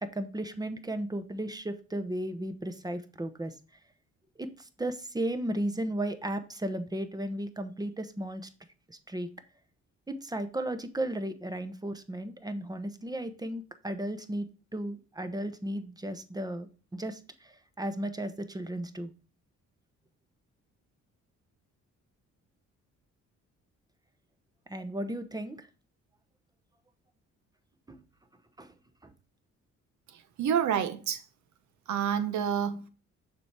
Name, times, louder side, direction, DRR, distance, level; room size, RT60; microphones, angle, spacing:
voice 1, 0.0-3.5 4.4-4.5 4.8-8.4 8.9-9.3 10.1-17.2 17.8-19.1 24.7-25.6 27.9-28.0 28.6-28.7, right 1 dB, 15° right, 0.8 m, -35 dB
voice 2, 30.1-31.3 31.9-32.9, right 8 dB, 70° right, 0.9 m, -29 dB
6.9 x 4.6 x 3.4 m
cardioid pair, 90°, 30 cm